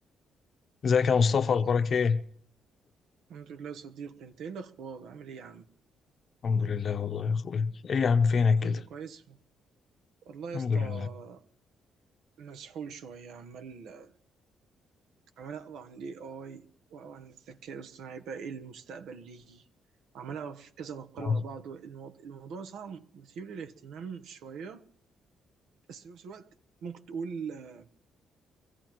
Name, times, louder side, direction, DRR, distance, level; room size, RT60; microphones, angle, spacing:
voice 1, 0.8-2.2 6.4-8.8 10.5-11.1 21.2-21.4, left 5 dB, 50° left, 0.8 m, -25 dB
voice 2, 3.3-5.7 8.6-9.4 10.2-11.4 12.4-14.1 15.4-19.6 20.1-24.8 25.9-26.5 26.8-27.9, right 6 dB, 80° right, 1.0 m, -42 dB
24.0 x 15.0 x 3.1 m
cardioid pair, 90°, 0 cm